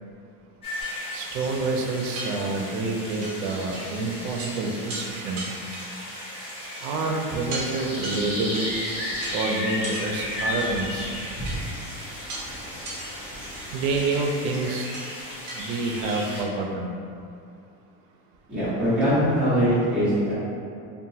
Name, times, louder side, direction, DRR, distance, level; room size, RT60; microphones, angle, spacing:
sound 1, 0.6-16.4, left 1 dB, 15° left, 0.4 m, -35 dB
sound 2, 0.8-1.0 1.6-1.7 2.2-2.8 3.2-3.3 3.7-3.9 4.2-4.5 4.9-5.0 5.4-6.1 6.7-7.0 7.5-7.7 8.0-8.7 9.2-9.4 9.8-10.1 10.6-11.1 11.5-11.6 12.3-12.5 12.8-13.1 13.5-14.2 14.9-15.1 15.5-15.6 15.9-16.2, right 2 dB, 45° right, 0.8 m, -36 dB
voice 1, 1.1-5.5 6.8-8.7 9.3-11.1 13.7-14.9 15.6-16.9, right 3 dB, 85° right, 1 dB, 0.5 m, -28 dB
sound 3, 8.7-14.0, equal, 50° left, 0.6 m, -40 dB
voice 2, 18.5-20.3, equal, 5° right, -15 dB, 0.9 m, -22 dB
2.9 x 2.2 x 2.7 m, 2.5 s
cardioid pair, 170°, 42 cm